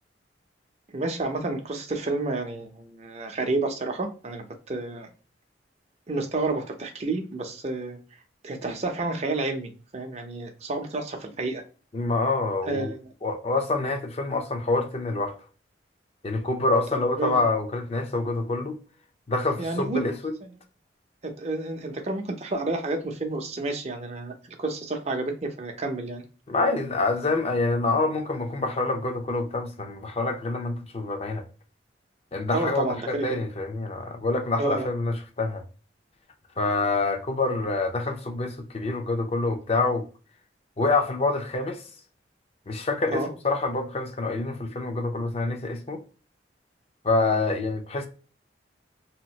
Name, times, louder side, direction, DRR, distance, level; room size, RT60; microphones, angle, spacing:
voice 1, 0.9-5.1 6.1-8.0 8.4-11.6 12.7-13.1 16.9-17.4 19.6-20.2 21.2-26.2 32.5-33.3 34.6-34.9 43.1-43.3, right 2 dB, 35° right, 0.6 m, -30 dB
voice 2, 11.9-12.9 13.2-15.3 16.2-18.8 19.3-20.3 26.5-31.4 32.3-35.6 36.6-40.1 40.8-41.8 42.7-46.0 47.0-48.1, left 3 dB, 35° left, 0.6 m, -26 dB
2.9 x 2.4 x 2.8 m
head